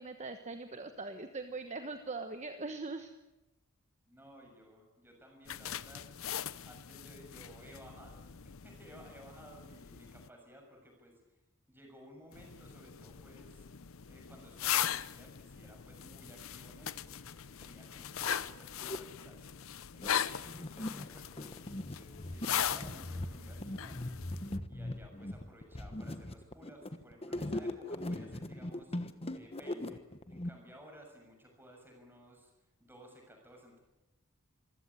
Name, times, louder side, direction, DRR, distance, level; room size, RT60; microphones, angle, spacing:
voice 1, 0.0-3.1, right 3 dB, 30° right, 7 dB, 1.2 m, -41 dB
voice 2, 4.1-6.1 6.6-11.4 11.7-13.7 14.1-19.5 19.9-24.2 24.7-28.9 29.3-30.0 30.3-32.5 32.8-33.8, equal, 10° right, 2 dB, 6.7 m, -57 dB
sound 1, 5.5-10.3 12.3-24.6, left 9 dB, 65° left, 0.7 m, -39 dB
sound 2, 17.6-17.7 18.0-19.0 19.6-30.5, left 1 dB, 25° left, 1.2 m, -40 dB
25.5 x 16.0 x 9.8 m, 0.99 s
head